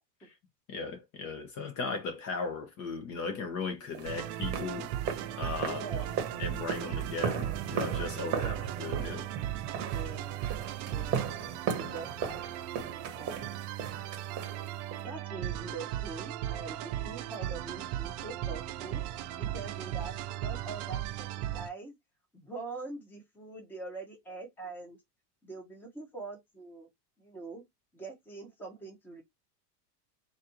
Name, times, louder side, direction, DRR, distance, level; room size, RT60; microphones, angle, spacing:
voice 1, 0.7-4.9 5.4-5.8 6.4-9.3, left 4 dB, 35° left, 1.0 m, -37 dB
sound 1, 3.9-15.1, right 7 dB, 30° right, 1.0 m, -37 dB
sound 2, 4.0-21.7, right 12 dB, 65° right, 0.7 m, -37 dB
voice 2, 5.6-6.2 8.2-8.7 9.9-10.4 10.9-11.4 11.8-12.4 13.1-13.5 15.0-19.0 19.4-21.3 21.5-21.9 22.3-25.0 25.4-26.9 27.2-27.7 27.9-29.2, right 3 dB, 5° left, 0.9 m, -43 dB
4.2 x 2.6 x 3.0 m
supercardioid pair, 150°, 48 cm